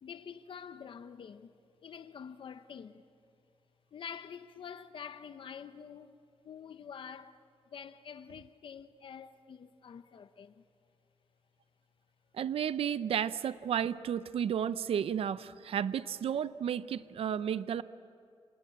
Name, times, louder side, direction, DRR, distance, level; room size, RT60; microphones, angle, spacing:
voice 1, 0.0-1.5 1.8-3.0 3.9-6.2 6.4-7.4 7.7-10.6, left 7 dB, 55° left, 0.9 m, -47 dB
voice 2, 12.3-17.8, right 9 dB, 70° right, 0.6 m, -32 dB
27.0 x 27.0 x 7.9 m
wide cardioid pair, 135°, 10 cm